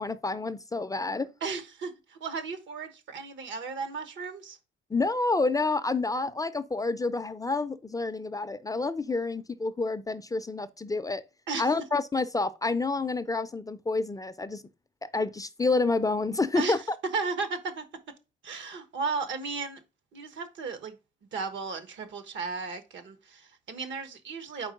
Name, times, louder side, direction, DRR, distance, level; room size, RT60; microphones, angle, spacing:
voice 1, 0.0-1.3 4.9-11.2 11.6-14.6 15.0-17.0, left 3 dB, 15° left, 0.5 m, -28 dB
voice 2, 1.4-4.6 11.5-11.7 16.6-16.8 17.1-17.8 18.4-19.8 20.1-21.0 21.3-24.7, right 4 dB, 70° right, 1.3 m, -35 dB
4.6 x 4.2 x 5.1 m
cardioid pair, 90°, 20 cm